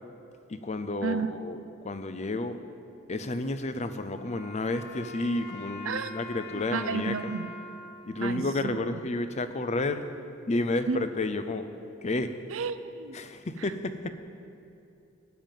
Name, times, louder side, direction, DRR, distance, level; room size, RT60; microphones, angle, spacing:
voice 1, 0.5-2.6 3.1-7.3 8.1-10.1 10.5-11.7 12.0-12.3 13.1-14.1, left 2 dB, 35° left, 10 dB, 0.5 m, -31 dB
Wind instrument woodwind instrument, 4.1-9.3, left 1 dB, 50° left, 1.2 m, -44 dB
voice 2, 6.5-7.5 8.2-8.8 10.9-11.1 12.5-13.2, right 5 dB, 80° right, 12 dB, 0.5 m, -32 dB
13.0 x 5.2 x 9.1 m, 2.6 s
head